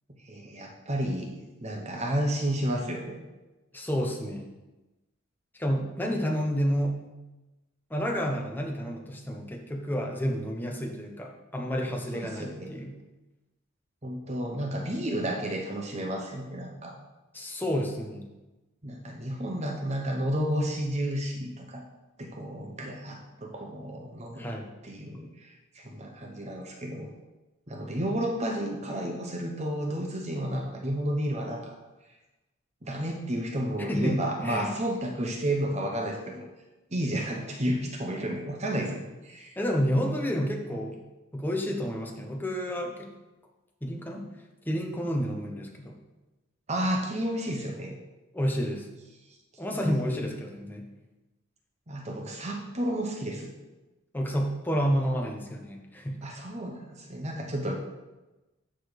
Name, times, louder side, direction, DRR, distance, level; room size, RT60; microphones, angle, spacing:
voice 1, 0.2-1.3 1.6-3.2 12.1-12.7 14.0-16.9 18.8-21.8 22.2-24.5 24.8-27.1 27.7-31.8 32.8-36.4 36.9-39.6 46.7-48.0 49.7-50.3 51.9-53.5 56.2-57.7, right 1 dB, 30° right, 1 dB, 1.0 m, -32 dB
voice 2, 3.7-4.5 5.6-7.0 7.9-13.0 17.3-18.3 24.4-24.7 33.8-34.7 39.6-41.0 41.3-43.1 43.8-44.2 44.6-46.0 48.3-48.9 49.6-50.9 54.1-56.2, equal, 10° left, 0 dB, 1.1 m, -30 dB
13.0 x 4.6 x 4.9 m, 1.1 s
head